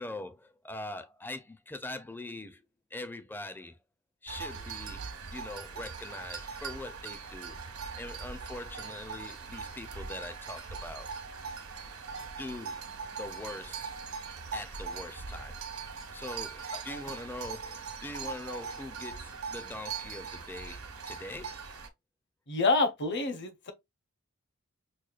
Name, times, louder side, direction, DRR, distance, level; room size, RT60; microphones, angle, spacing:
voice 1, 0.0-2.6 2.9-3.8 4.2-7.6 7.9-11.1 12.4-13.9 14.5-15.6 16.1-21.6, left 2 dB, 10° left, 0.4 m, -42 dB
sound 1, 4.3-21.9, right 5 dB, 80° right, 1.1 m, -41 dB
voice 2, 22.5-23.7, left 3 dB, 55° left, 0.8 m, -27 dB
6.2 x 2.2 x 2.4 m
head